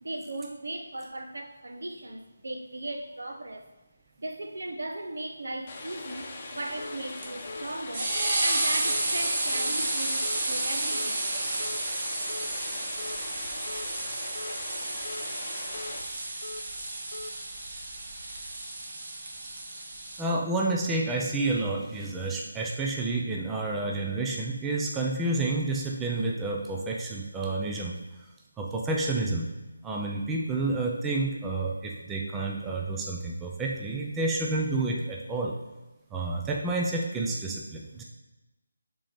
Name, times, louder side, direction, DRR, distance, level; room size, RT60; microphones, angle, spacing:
voice 1, 0.0-3.6 4.2-11.3, right 2 dB, 70° right, 5 dB, 0.7 m, -37 dB
sound 1, 5.7-16.0, left 2 dB, 30° left, 0.8 m, -41 dB
sound 2, 6.8-7.0 7.5-7.7 8.1-8.4 8.8-9.0 9.5-9.7 10.2-10.4 10.9-11.1 11.6-11.8 12.3-12.5 13.0-13.2 13.7-13.9 14.3-14.6 15.0-15.3 15.7-15.9 16.4-16.6 17.1-17.3, left 2 dB, 65° left, 0.4 m, -41 dB
sound 3, 7.2-20.2, right 2 dB, 40° right, 1.1 m, -31 dB
voice 2, 20.2-27.9 28.6-29.5 29.8-35.5 36.1-38.0, right 2 dB, 10° right, -1 dB, 0.4 m, -29 dB
6.2 x 3.8 x 4.2 m, 1.1 s
figure-of-eight pair, 165°, 0 cm